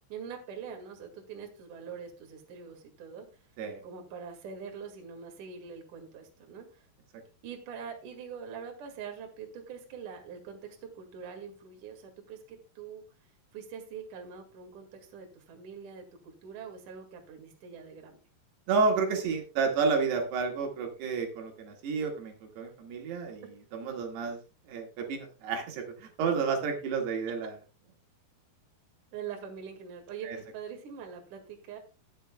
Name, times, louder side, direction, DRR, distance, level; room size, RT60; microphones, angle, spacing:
voice 1, 0.1-3.5 3.8-6.9 7.4-13.0 13.5-18.2 29.1-31.8, right 6 dB, 55° right, 3 dB, 3.1 m, -44 dB
voice 2, 18.7-23.5 23.7-24.4 24.7-27.6 30.2-30.4, right 5 dB, 75° right, 3 dB, 3.8 m, -30 dB
20.5 x 7.1 x 2.2 m, 0.31 s
omnidirectional pair, 4.8 m